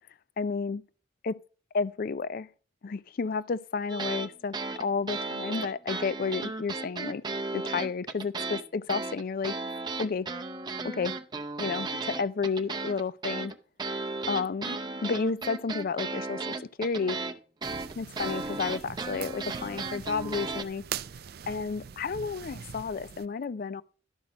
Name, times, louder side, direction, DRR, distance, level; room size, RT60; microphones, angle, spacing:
voice 1, 0.4-0.8 1.2-1.4 1.7-2.5 2.8-7.2 7.5-9.6 10.0-10.3 10.8-11.1 11.6-13.5 14.3-17.2 18.0-20.8 21.5-23.8, left 5 dB, 50° left, 0.4 m, -31 dB
sound 1, 3.9-4.3 4.5-8.6 8.9-20.6, right 3 dB, 25° right, 0.7 m, -35 dB
sound 2, 17.6-23.3, right 8 dB, 55° right, 0.4 m, -42 dB
12.0 x 6.0 x 5.2 m
head